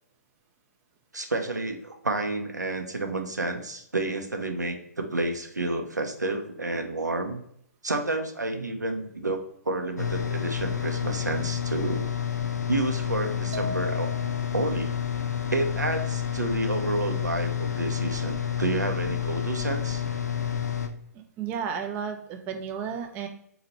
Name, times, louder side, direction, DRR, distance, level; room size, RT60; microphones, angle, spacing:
voice 1, 1.1-7.4 7.8-12.1 12.7-14.1 14.5-14.9 15.5-20.0, right 2 dB, 85° right, 5 dB, 0.6 m, -30 dB
sound 1, 10.0-20.9, left 9 dB, 75° left, 0.5 m, -29 dB
sound 2, 13.5-14.7, left 3 dB, 45° right, 0.7 m, -36 dB
voice 2, 21.4-23.3, right 7 dB, 20° right, 5 dB, 0.3 m, -32 dB
4.0 x 2.9 x 2.7 m, 0.70 s
figure-of-eight pair, 125°, 9 cm